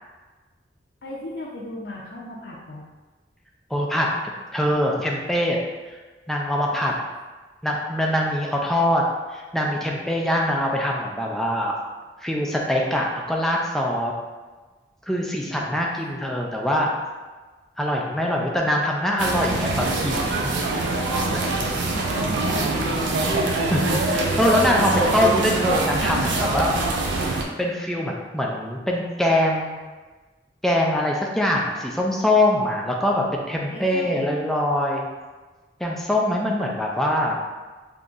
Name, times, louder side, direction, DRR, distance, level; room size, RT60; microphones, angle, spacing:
voice 1, 1.0-2.8 6.7-6.9 20.9-22.7 33.7-34.2, left 1 dB, 70° left, -4 dB, 0.5 m, -37 dB
voice 2, 3.7-4.1 4.5-5.6 6.3-6.9 7.6-9.0 9.3-11.7 12.2-14.1 15.1-16.9 17.8-20.6 21.3-21.4 22.9-23.1 23.4-26.7 27.6-29.8 30.6-35.1 35.8-37.4, left 1 dB, ahead, -2 dB, 0.3 m, -23 dB
sound 1, 19.2-27.4, right 2 dB, 85° right, 0.5 m, -24 dB
3.7 x 2.7 x 2.5 m, 1.3 s
head